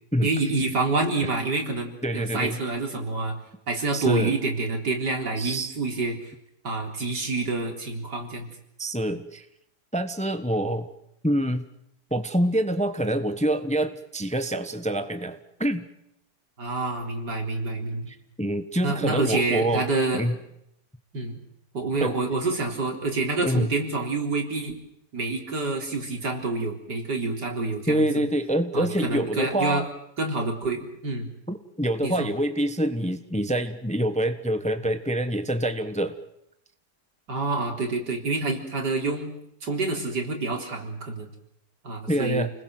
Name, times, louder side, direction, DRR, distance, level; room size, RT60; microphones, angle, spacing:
voice 1, 0.2-3.4 3.7-6.3 6.6-8.5 16.6-18.1 18.8-20.4 21.1-21.4 21.7-24.8 25.1-28.2 28.7-29.8 30.2-31.3 32.0-32.3 37.3-39.3 39.6-41.3 41.8-42.5, right 3 dB, 85° right, 2 dB, 4.4 m, -27 dB
voice 2, 2.0-2.6 3.9-4.3 5.4-5.7 8.8-9.4 9.9-10.9 11.2-11.6 12.1-15.9 18.1-19.9 20.1-20.3 22.0-22.1 23.4-23.7 27.9-29.9 31.5-36.2 42.1-42.5, right 1 dB, 5° left, 9 dB, 1.1 m, -26 dB
29.5 x 20.5 x 7.9 m, 0.78 s
omnidirectional pair, 1.8 m